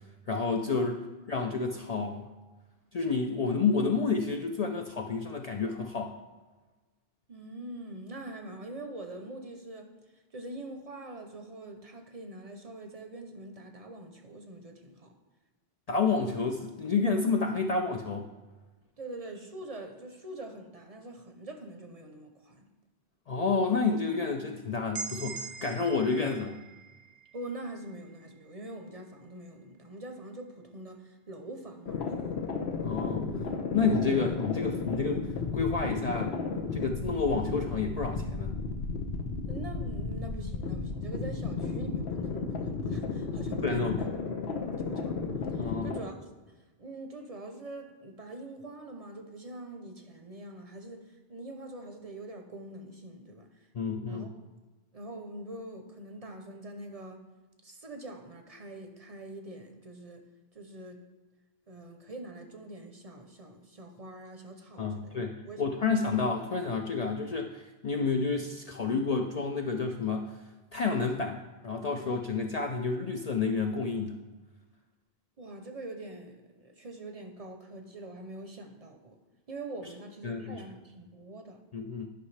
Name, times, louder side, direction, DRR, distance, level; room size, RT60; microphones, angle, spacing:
voice 1, 0.3-2.3 2.9-6.1 15.9-18.3 23.3-26.6 32.8-33.3 33.7-35.3 35.5-36.3 36.7-38.5 43.6-44.0 45.6-45.9 53.7-54.3 64.8-70.3 70.7-74.2 80.2-80.6 81.7-82.1, left 4 dB, 55° left, 3 dB, 0.5 m, -30 dB
voice 2, 7.3-9.9 10.3-15.1 19.0-22.7 27.3-32.4 39.5-44.1 44.4-46.2 46.4-46.5 46.8-53.7 54.0-54.5 54.9-57.2 57.6-60.3 60.5-61.0 61.7-66.1 75.4-79.2 79.5-81.6, right 2 dB, 40° right, 4 dB, 0.7 m, -44 dB
sound 1, 24.9-28.8, right 5 dB, 80° right, 0.9 m, -43 dB
sound 2, 31.9-46.0, left 4 dB, 90° left, 1.0 m, -33 dB
10.0 x 5.5 x 3.2 m, 1.2 s
omnidirectional pair, 1.0 m